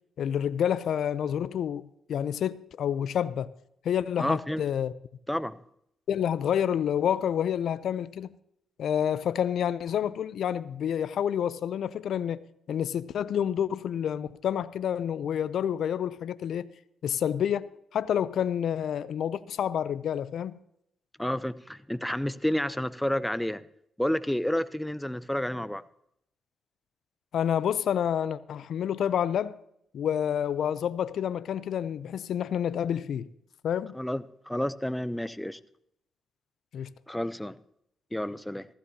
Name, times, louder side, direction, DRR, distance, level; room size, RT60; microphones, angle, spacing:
voice 1, 0.2-3.5 3.8-4.9 6.1-8.3 8.8-16.7 17.0-20.5 27.3-29.6 29.9-33.3 33.6-34.0 36.7-36.9, left 9 dB, 70° left, 0.4 m, -28 dB
voice 2, 4.2-4.6 5.3-5.6 21.2-23.6 24.0-25.8 33.9-35.6 37.1-37.6 38.1-38.7, left 1 dB, 5° left, 0.5 m, -30 dB
15.0 x 15.0 x 2.8 m
cardioid pair, 70°, 0 cm